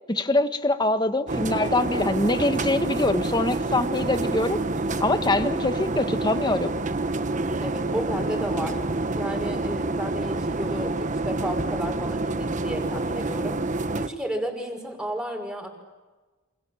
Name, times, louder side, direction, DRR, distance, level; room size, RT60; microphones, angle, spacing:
voice 1, 0.1-4.6 5.0-6.7, left 2 dB, 20° left, 9 dB, 1.5 m, -24 dB
sound 1, 1.3-14.1, right 2 dB, 40° right, 1.1 m, -27 dB
voice 2, 7.6-8.8 9.2-13.6 14.0-15.7, equal, 5° right, 2 dB, 5.6 m, -32 dB
29.5 x 27.5 x 7.3 m, 1.3 s
head